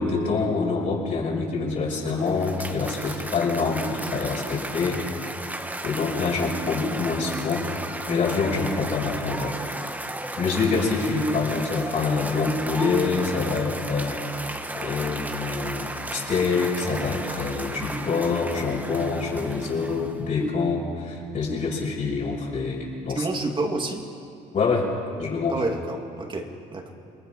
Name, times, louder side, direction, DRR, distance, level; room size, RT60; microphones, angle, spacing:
voice 1, 0.0-5.0 5.8-7.6 8.1-9.5 10.4-23.3 24.5-24.9 25.2-25.6, left 4 dB, 50° left, -5 dB, 5.5 m, -26 dB
Cheering / Applause, 1.8-20.4, right 1 dB, 10° right, 1.3 m, -34 dB
voice 2, 23.1-24.1 25.5-26.9, right 2 dB, 30° right, 3 dB, 2.7 m, -29 dB
28.0 x 21.5 x 5.8 m, 2.6 s
cardioid pair, 110°, 17 cm